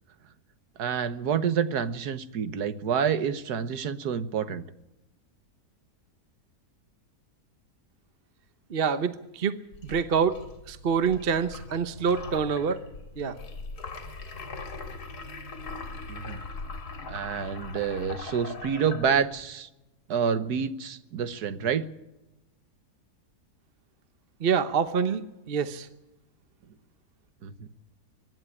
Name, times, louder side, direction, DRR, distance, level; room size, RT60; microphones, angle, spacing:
voice 1, 0.8-4.6 16.1-16.4 17.1-19.7 20.1-21.8 27.4-27.5, right 7 dB, 80° right, 12 dB, 1.6 m, -28 dB
voice 2, 8.7-9.6 9.8-10.4 10.7-12.8 13.2-13.4 24.4-25.2 25.5-25.9, right 6 dB, 45° right, 11 dB, 0.9 m, -26 dB
sound 1, 9.7-19.5, left 3 dB, 85° left, 2.6 m, -41 dB
24.0 x 11.0 x 9.9 m, 0.97 s
omnidirectional pair, 1.7 m